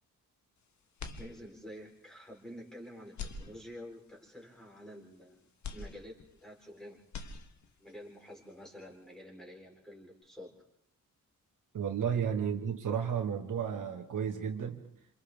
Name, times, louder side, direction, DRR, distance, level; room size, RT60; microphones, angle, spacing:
sound 1, 1.0-1.9 2.3-2.4 3.1-4.1 5.6-6.7 7.0-7.9, left 5 dB, 60° left, 1.4 m, -45 dB
voice 1, 1.2-7.0 7.8-10.5 12.0-12.3, equal, ahead, -2 dB, 4.0 m, -49 dB
voice 2, 11.7-14.8, right 7 dB, 70° right, 4 dB, 1.8 m, -33 dB
27.5 x 27.0 x 3.6 m, 0.74 s
wide cardioid pair, 150°, 33 cm